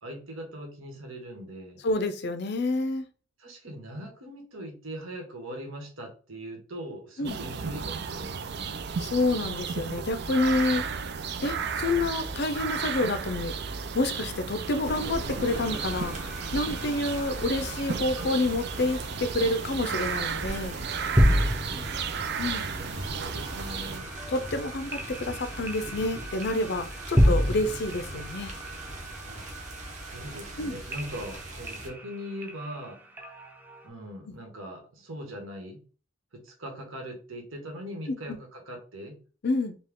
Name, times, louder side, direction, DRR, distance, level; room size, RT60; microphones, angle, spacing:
voice 1, 0.0-1.8 3.4-8.8 16.8-17.2 21.4-21.6 22.2-24.1 29.3-29.5 30.0-33.0 33.8-35.8 36.3-39.2, equal, 85° right, 1.4 m, -41 dB
voice 2, 1.8-3.0 7.2-7.3 9.0-10.8 11.4-13.5 13.9-16.1 16.5-20.8 22.4-22.7 24.3-28.5 30.6-30.8 34.3-34.4 38.1-38.2 39.4-39.8, left 2 dB, 55° left, 0.5 m, -28 dB
sound 1, 7.2-24.0, right 6 dB, 55° right, 0.4 m, -34 dB
sound 2, 14.8-31.9, right 1 dB, 35° right, 0.9 m, -41 dB
sound 3, 15.5-33.9, equal, 10° right, 0.6 m, -32 dB
4.4 x 2.3 x 3.6 m
head